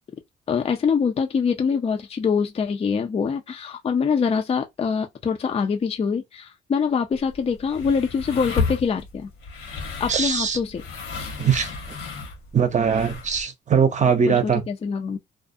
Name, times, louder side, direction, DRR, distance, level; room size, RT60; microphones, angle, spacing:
voice 1, 0.5-9.3 10.0-10.8 14.3-14.4 14.7-15.2, left 6 dB, 30° left, 0.4 m, -24 dB
sound 1, 7.1-13.4, left 4 dB, 75° left, 1.1 m, -33 dB
voice 2, 10.1-10.6 11.4-11.7 12.5-14.6, right 6 dB, 35° right, 0.7 m, -21 dB
2.3 x 2.1 x 2.5 m
cardioid pair, 90°, 20 cm